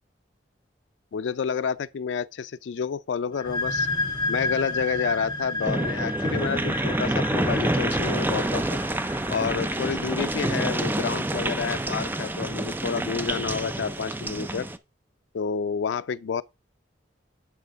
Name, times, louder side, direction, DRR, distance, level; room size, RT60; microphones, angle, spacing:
voice 1, 1.1-3.9 4.3-8.8 9.3-14.7 15.3-16.4, left 6 dB, 80° left, 0.4 m, -29 dB
sound 1, 3.3-10.8, left 2 dB, 20° left, 1.6 m, -32 dB
sound 2, 5.6-14.8, right 1 dB, 10° right, 0.4 m, -27 dB
10.5 x 5.0 x 3.5 m
head